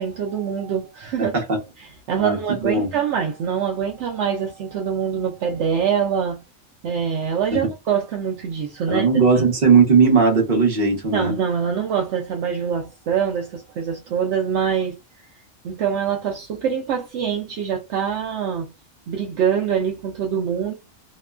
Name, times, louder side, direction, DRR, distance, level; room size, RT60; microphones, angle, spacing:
voice 1, 0.0-1.4 1.8-6.4 6.8-9.1 9.4-9.5 10.8-15.0 15.6-18.7 19.1-20.7, right 7 dB, 70° right, 0.8 m, -24 dB
voice 2, 1.2-1.6 2.2-2.9 7.5-7.7 8.9-11.3, right 5 dB, 45° right, 1.0 m, -18 dB
2.9 x 2.2 x 2.3 m
omnidirectional pair, 1.3 m